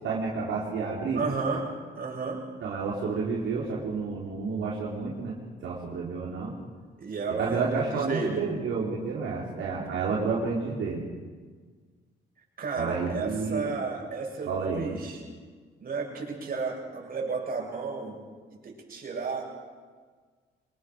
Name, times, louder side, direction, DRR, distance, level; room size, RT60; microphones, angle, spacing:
voice 1, 0.0-1.6 2.6-5.3 5.6-6.5 7.3-11.0 12.8-13.7 14.5-14.9, right 4 dB, 75° right, -5 dB, 4.4 m, -30 dB
voice 2, 1.1-1.7 2.0-2.4 7.0-8.4 12.6-15.2 15.8-18.2 18.5-19.5, right 4 dB, 45° right, -1 dB, 7.9 m, -32 dB
25.5 x 21.0 x 6.5 m, 1.5 s
cardioid pair, 90°, 20 cm